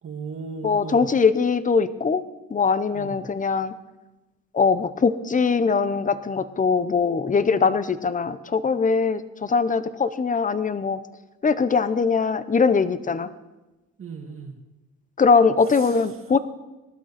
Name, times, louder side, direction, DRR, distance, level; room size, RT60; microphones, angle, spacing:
voice 1, 0.0-1.1 2.9-3.3 14.0-14.6 15.7-16.1, right 5 dB, 45° right, 3 dB, 2.2 m, -36 dB
voice 2, 0.6-2.2 2.5-3.7 4.5-11.0 11.4-13.3 15.2-16.4, left 5 dB, 25° left, 13 dB, 0.9 m, -21 dB
19.5 x 12.0 x 4.3 m, 1.1 s
cardioid pair, 90°, 30 cm